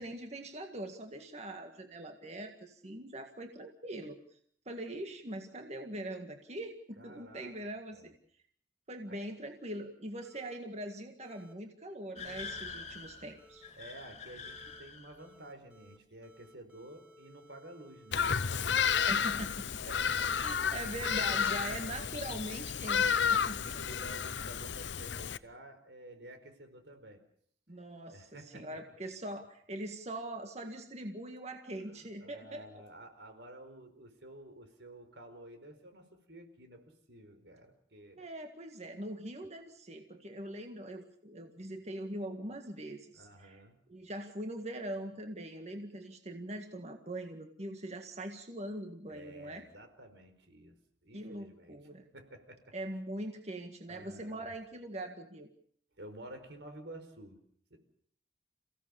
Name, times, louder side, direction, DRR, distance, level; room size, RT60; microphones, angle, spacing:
voice 1, 0.0-4.2 4.7-8.1 8.9-13.6 19.1-19.7 20.4-23.8 27.7-32.7 38.2-43.6 43.9-49.7 51.1-52.1 52.7-55.5, right 1 dB, 40° right, 4 dB, 1.9 m, -42 dB
voice 2, 7.0-7.6 7.9-8.1 9.1-9.2 13.8-19.3 19.9-20.6 21.3-21.8 22.9-27.2 28.0-28.8 32.0-38.3 43.1-43.8 49.1-51.8 52.1-52.8 53.9-54.5 56.0-57.4 57.7-57.8, right 1 dB, 80° right, 7 dB, 4.7 m, -52 dB
sound 1, 10.2-10.6 11.2-11.5 12.3-12.6 13.4-13.7 14.4-14.8 15.2-16.0 16.2-20.0, left 1 dB, 10° right, 5.2 m, -60 dB
sound 2, 12.2-15.3, left 4 dB, 40° left, 2.3 m, -45 dB
Bird vocalization bird call bird song, 18.1-25.4, left 7 dB, 85° left, 0.8 m, -31 dB
29.0 x 17.0 x 7.1 m, 0.64 s
head